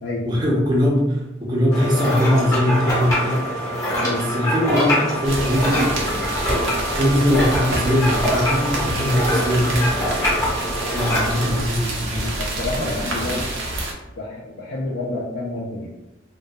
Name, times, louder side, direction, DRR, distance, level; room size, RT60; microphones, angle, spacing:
voice 1, 0.3-3.4 4.0-6.5 7.0-10.4 10.9-12.3 12.8-13.4, equal, 25° right, -3 dB, 0.5 m, -21 dB
sound 1, 1.7-11.6, equal, 15° left, 0.7 m, -24 dB
sound 2, 5.2-13.9, right 1 dB, 85° right, 0.5 m, -28 dB
voice 2, 12.3-13.5 14.2-15.9, left 2 dB, 65° left, -3 dB, 0.3 m, -29 dB
2.2 x 2.2 x 2.6 m, 0.98 s
head